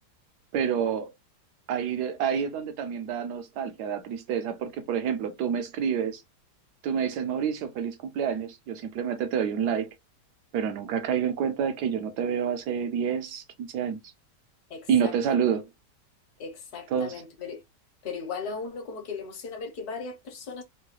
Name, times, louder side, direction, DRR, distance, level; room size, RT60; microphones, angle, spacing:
voice 1, 0.5-1.1 1.7-6.2 6.8-9.9 10.5-14.0 14.9-15.7 16.9-17.2, right 7 dB, 75° right, 1.2 m, -28 dB
voice 2, 14.7-15.5 16.4-17.6 18.0-20.6, left 5 dB, 70° left, 1.4 m, -37 dB
3.6 x 2.3 x 3.0 m
omnidirectional pair, 1.8 m